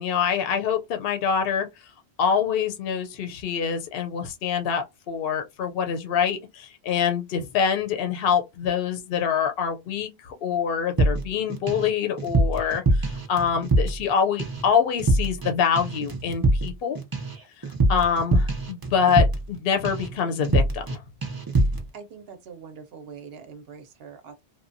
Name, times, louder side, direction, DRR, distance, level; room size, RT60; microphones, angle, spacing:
voice 1, 0.0-1.7 2.2-17.0 17.9-21.0, left 7 dB, 65° left, 0.7 m, -25 dB
sound 1, 11.0-11.9 12.2-14.1 14.4-14.7 15.0-15.5 15.8-19.6 19.8-20.1 20.4-21.0 21.2-21.8, right 2 dB, 30° right, 0.4 m, -23 dB
voice 2, 21.9-24.4, right 6 dB, 65° right, 0.8 m, -43 dB
3.0 x 2.1 x 2.5 m
omnidirectional pair, 1.2 m